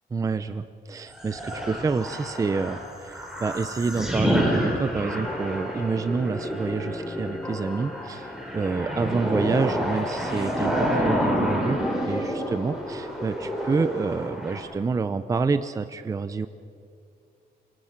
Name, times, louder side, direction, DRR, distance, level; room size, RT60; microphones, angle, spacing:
voice 1, 0.1-11.8 12.1-16.5, right 4 dB, 20° right, 11 dB, 0.6 m, -28 dB
sound 1, 1.1-14.6, equal, 5° right, 5.1 m, -29 dB
sound 2, 5.2-14.0, left 2 dB, 15° left, 1.3 m, -39 dB
27.5 x 25.5 x 5.9 m, 2.4 s
wide cardioid pair, 180°, 17 cm